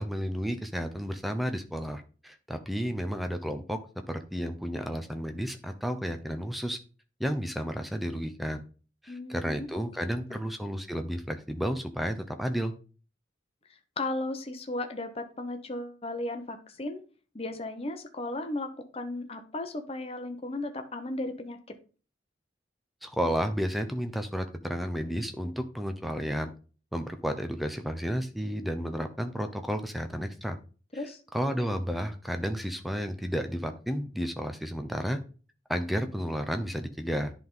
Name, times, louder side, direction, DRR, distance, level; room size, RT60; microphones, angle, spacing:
voice 1, 0.0-3.8 4.1-6.8 7.2-8.6 9.0-12.7 23.0-26.5 26.9-30.6 31.3-35.2 35.7-37.3, equal, ahead, 7 dB, 0.6 m, -32 dB
voice 2, 9.1-9.7 10.3-10.5 14.0-17.0 17.3-21.6 30.9-31.2, left 2 dB, 30° left, 6 dB, 0.8 m, -35 dB
10.5 x 3.6 x 3.8 m, 0.37 s
head